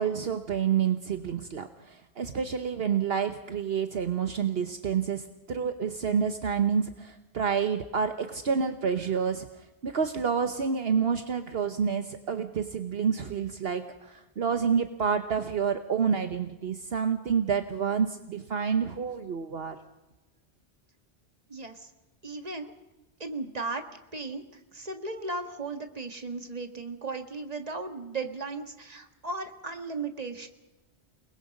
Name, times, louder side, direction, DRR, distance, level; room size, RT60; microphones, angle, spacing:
voice 1, 0.0-9.5 9.8-19.8, right 6 dB, 65° right, 8 dB, 1.2 m, -28 dB
voice 2, 21.5-21.9 22.2-22.7 23.2-23.8 24.1-24.4 24.7-30.5, right 3 dB, 35° right, 6 dB, 1.9 m, -36 dB
29.0 x 20.0 x 5.3 m, 1.0 s
omnidirectional pair, 1.1 m